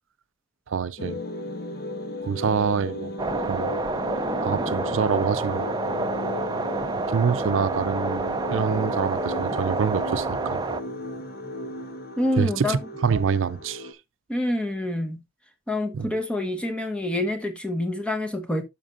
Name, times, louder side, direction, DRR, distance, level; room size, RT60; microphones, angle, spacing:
voice 1, 0.7-1.2 2.2-3.1 3.5-3.7 4.4-5.7 7.1-10.6 12.4-13.9 15.9-16.1, right 6 dB, 75° right, 0.5 m, -26 dB
sound 1, 1.0-13.9, left 2 dB, 50° left, 1.2 m, -35 dB
sound 2, 3.2-10.8, right 3 dB, 20° right, 0.5 m, -28 dB
voice 2, 12.2-12.8 14.3-15.2 15.7-18.6, left 1 dB, 5° left, 1.2 m, -27 dB
12.5 x 5.2 x 2.4 m
head